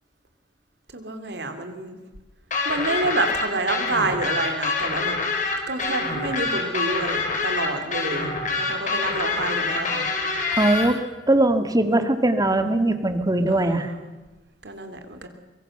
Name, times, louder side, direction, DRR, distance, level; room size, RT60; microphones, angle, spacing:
voice 1, 0.9-2.0 2.6-5.2 5.7-8.3 8.6-10.1 11.9-12.1 13.5-14.1 14.6-15.3, right 2 dB, 70° right, 7 dB, 3.4 m, -28 dB
sound 1, 2.5-10.9, left 3 dB, 45° left, 4.6 m, -26 dB
voice 2, 10.5-11.0 11.3-13.9, right 1 dB, 20° right, 9 dB, 2.0 m, -20 dB
24.0 x 23.5 x 6.8 m, 1.2 s
head